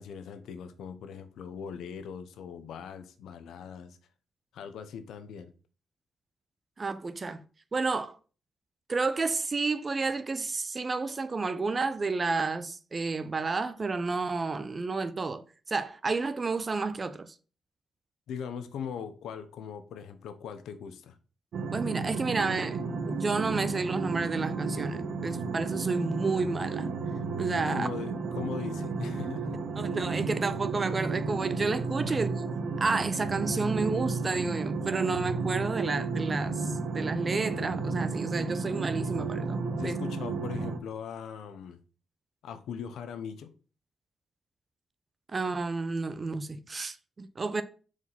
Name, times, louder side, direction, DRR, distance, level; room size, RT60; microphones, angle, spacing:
voice 1, 0.0-4.0 4.5-5.5 18.3-21.2 27.7-29.6 32.1-32.2 39.8-41.8 42.4-43.5, left 7 dB, 90° left, 0.7 m, -40 dB
voice 2, 6.8-7.4 7.7-8.2 8.9-17.3 21.7-22.8 23.1-26.9 27.4-27.9 29.3-29.4 29.8-32.3 32.8-40.0 45.3-47.6, right 3 dB, 35° right, 0.6 m, -31 dB
sound 1, 21.5-40.8, right 4 dB, 75° right, 0.9 m, -32 dB
4.8 x 3.9 x 5.6 m
cardioid pair, 85°, 0 cm